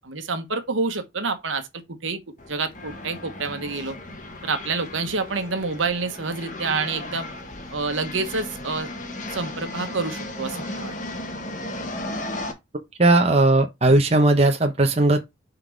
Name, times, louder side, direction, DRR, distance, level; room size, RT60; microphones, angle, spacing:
voice 1, 0.0-1.7 2.0-2.2 2.5-3.9 4.4-7.3 7.7-8.9 9.3-10.9, right 4 dB, 85° right, 1.2 m, -27 dB
sound 1, 2.4-12.5, left 1 dB, 40° left, 1.3 m, -35 dB
voice 2, 13.0-15.2, right 2 dB, 30° right, 0.9 m, -17 dB
5.9 x 3.9 x 4.6 m
head